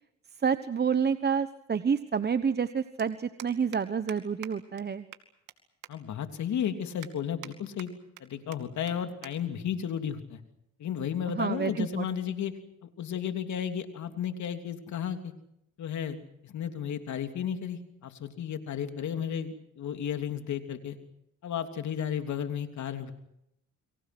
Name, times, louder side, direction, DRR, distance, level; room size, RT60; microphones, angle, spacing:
voice 1, 0.4-5.1 11.3-12.1, right 6 dB, 35° right, 11 dB, 1.1 m, -28 dB
sound 1, 3.0-3.1 3.4-3.8 4.1-4.2 4.4-4.5 4.8-4.9 5.1-5.6 5.8-5.9 6.4-6.5 7.0-7.5 7.8-8.2 8.5-8.6 8.9-9.0 9.2-9.3 9.6-9.9 10.7-10.9, right 12 dB, 85° right, 2.5 m, -45 dB
voice 2, 5.9-7.9 8.2-10.4 10.8-12.5 12.8-15.3 15.8-16.2 16.4-21.0 21.4-23.1, left 8 dB, 70° left, 7 dB, 3.1 m, -33 dB
30.0 x 23.5 x 6.1 m, 0.79 s
cardioid pair, 90°, 30 cm